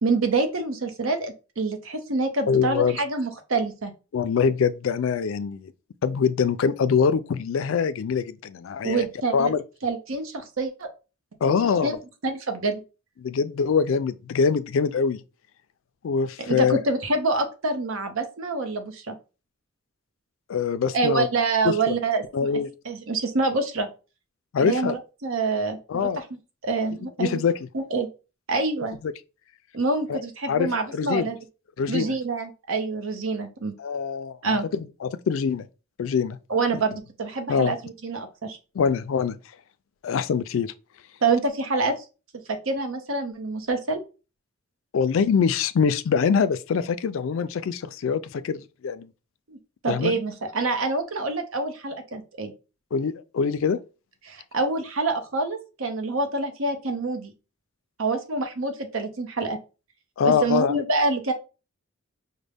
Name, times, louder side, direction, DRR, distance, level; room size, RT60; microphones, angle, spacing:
voice 1, 0.0-3.9 8.8-9.5 9.8-10.9 11.5-11.6 11.8-12.0 12.2-12.8 16.5-19.1 20.9-22.2 22.8-23.9 24.6-26.2 26.6-27.4 27.7-28.1 28.5-29.0 29.7-31.4 31.9-33.7 34.4-34.7 36.5-38.6 41.2-41.9 42.5-44.0 49.5-49.6 49.8-52.5 54.3-57.3 58.0-59.6 60.2-61.3, right 3 dB, 75° right, 0.8 m, -26 dB
voice 2, 2.5-3.0 4.1-5.7 6.0-9.1 9.3-9.6 11.4-12.0 13.2-15.2 16.0-16.8 20.5-21.3 21.6-22.0 22.3-22.7 24.5-25.0 25.9-26.2 27.2-27.6 29.0-29.1 30.1-30.2 30.5-31.3 31.8-32.1 33.8-35.7 36.0-36.4 37.5-37.7 38.7-39.4 40.0-40.7 44.9-49.1 49.9-50.1 52.9-53.8 60.2-60.8, left 6 dB, 70° left, 0.3 m, -24 dB
5.1 x 2.1 x 3.4 m
head